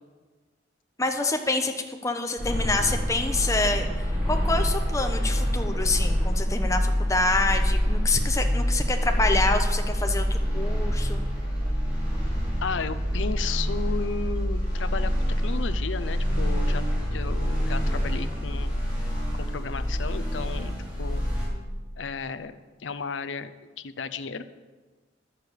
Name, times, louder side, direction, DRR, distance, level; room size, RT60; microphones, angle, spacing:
voice 1, 1.0-3.9 4.2-11.2, left 2 dB, 15° left, 4 dB, 0.9 m, -27 dB
sound 1, 2.4-21.5, equal, 5° right, 4.0 m, -26 dB
voice 2, 12.6-15.1 15.4-16.8 17.1-18.9 19.3-20.7 21.0-21.2 22.0-24.4, left 5 dB, 80° left, 12 dB, 0.6 m, -34 dB
10.5 x 6.7 x 8.1 m, 1.3 s
head